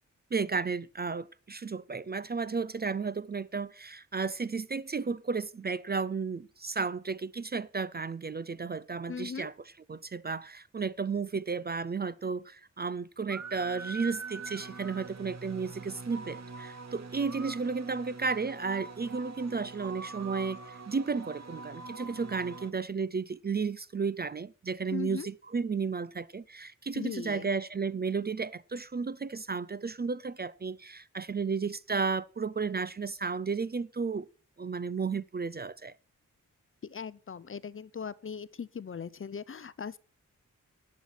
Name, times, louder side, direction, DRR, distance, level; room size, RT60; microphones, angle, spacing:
voice 1, 0.3-9.5 9.9-34.3 34.6-35.9, right 5 dB, 30° right, 0.4 m, -33 dB
voice 2, 9.1-9.5 24.9-25.3 26.9-27.5 36.8-40.0, left 6 dB, 40° left, 0.6 m, -39 dB
sound 1, 13.3-22.7, right 4 dB, 50° right, 1.3 m, -43 dB
11.5 x 7.4 x 5.9 m
wide cardioid pair, 100°, 33 cm